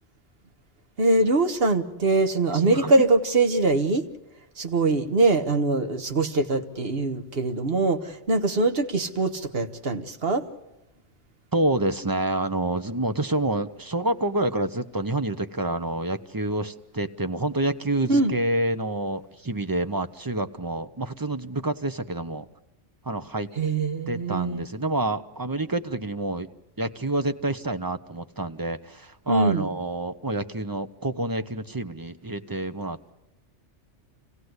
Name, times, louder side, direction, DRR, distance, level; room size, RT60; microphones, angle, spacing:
voice 1, 1.0-4.0 4.6-10.4 18.1-18.3 23.6-24.7 29.3-29.7, right 3 dB, 55° right, 7 dB, 1.5 m, -23 dB
voice 2, 2.5-3.1 11.5-22.4 23.1-23.5 24.1-26.5 26.8-33.0, right 2 dB, 20° right, 10 dB, 0.6 m, -28 dB
27.0 x 16.5 x 8.0 m, 1.0 s
omnidirectional pair, 1.2 m